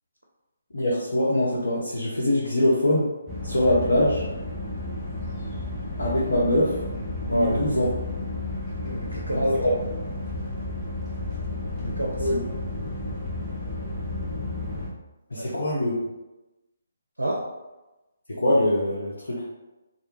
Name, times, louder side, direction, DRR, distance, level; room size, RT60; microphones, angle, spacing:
voice 1, 0.7-3.1 3.4-4.2 6.0-6.8 7.3-7.9 9.3-9.7 12.3-12.4 15.3-15.9 18.4-19.5, left 1 dB, 65° left, -7 dB, 0.6 m, -23 dB
sound 1, 3.3-14.9, left 2 dB, 5° left, 0.6 m, -32 dB
voice 2, 7.3-7.7 8.8-9.6 11.8-12.4 15.3-15.6 17.2-17.4, right 1 dB, 80° right, -2 dB, 0.5 m, -27 dB
2.2 x 2.1 x 3.0 m, 1.0 s
figure-of-eight pair, 140°, 0 cm